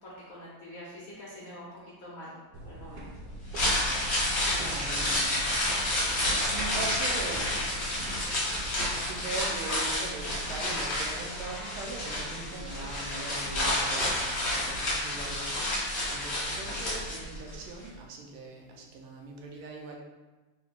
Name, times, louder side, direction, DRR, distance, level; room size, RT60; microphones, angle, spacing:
voice 1, 0.0-3.1, left 1 dB, 60° left, -7 dB, 0.9 m, -45 dB
sound 1, 2.5-9.0, right 1 dB, 70° right, 1.2 m, -43 dB
sound 2, 3.3-17.5 17.8-17.9, left 1 dB, 35° left, 1.3 m, -30 dB
voice 2, 4.2-6.1 6.5-7.5 9.0-15.8 16.1-20.0, right 3 dB, 90° right, 0 dB, 1.5 m, -41 dB
4.1 x 2.1 x 4.3 m, 1.2 s
omnidirectional pair, 2.3 m